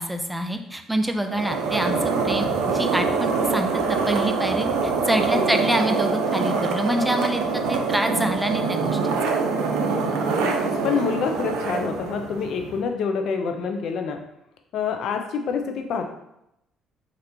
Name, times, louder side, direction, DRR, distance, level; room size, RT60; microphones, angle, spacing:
voice 1, 0.0-7.4 7.7-9.3, right 1 dB, 5° right, 6 dB, 0.4 m, -26 dB
sound 1, 1.3-12.8, right 4 dB, 85° right, 0.4 m, -24 dB
voice 2, 5.3-5.7 10.4-14.2 14.7-16.1, left 6 dB, 70° left, 4 dB, 0.3 m, -27 dB
2.9 x 2.4 x 3.3 m, 0.82 s
supercardioid pair, 75°, 0 cm